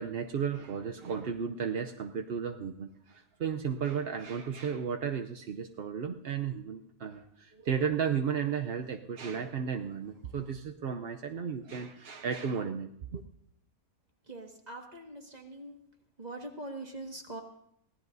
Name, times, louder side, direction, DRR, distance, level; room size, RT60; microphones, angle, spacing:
voice 1, 0.0-13.2, right 7 dB, 55° right, 5 dB, 0.7 m, -34 dB
voice 2, 14.3-15.8 16.2-17.4, right 2 dB, 25° right, 2 dB, 1.9 m, -43 dB
24.0 x 17.5 x 2.7 m, 0.71 s
omnidirectional pair, 1.6 m